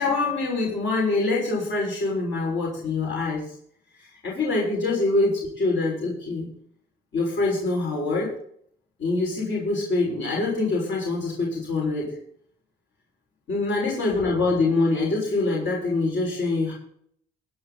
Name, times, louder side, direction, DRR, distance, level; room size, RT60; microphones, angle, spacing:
voice 1, 0.0-3.5 4.0-6.5 7.1-8.3 9.0-12.1 13.5-16.7, left 3 dB, 70° left, -3 dB, 6.3 m, -25 dB
17.5 x 9.7 x 4.2 m, 0.66 s
cardioid pair, 90°, 20 cm